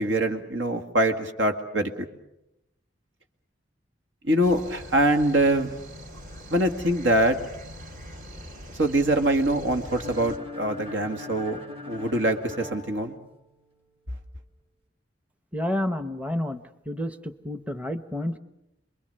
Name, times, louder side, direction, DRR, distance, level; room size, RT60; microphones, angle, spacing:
voice 1, 0.0-1.9 4.2-5.7 6.5-7.4 8.8-13.2, right 1 dB, 85° right, 6 dB, 2.0 m, -24 dB
sound 1, 4.4-10.4, equal, 50° right, 3.2 m, -42 dB
sound 2, 9.8-13.7, left 3 dB, 30° right, 2.4 m, -41 dB
voice 2, 15.5-18.4, left 1 dB, 5° right, 10 dB, 0.8 m, -30 dB
28.0 x 22.0 x 6.7 m, 0.86 s
head